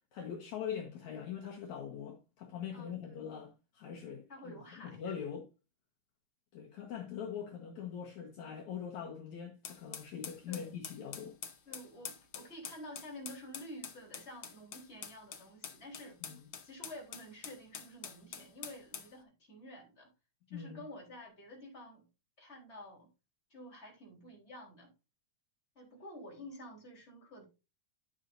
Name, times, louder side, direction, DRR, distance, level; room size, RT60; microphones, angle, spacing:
voice 1, 0.1-4.6 4.9-5.5 6.5-11.4 16.2-16.5 20.5-20.8, left 8 dB, 65° left, 2.6 m, -42 dB
voice 2, 2.7-3.2 4.3-5.3 10.5-10.8 11.7-16.2 16.6-20.1 20.5-22.1 22.4-23.1 23.5-24.9 25.8-27.4, left 1 dB, 20° left, 3.9 m, -50 dB
sound 1, 9.6-19.1, left 7 dB, 80° left, 1.0 m, -46 dB
11.0 x 7.4 x 2.6 m
omnidirectional pair, 3.8 m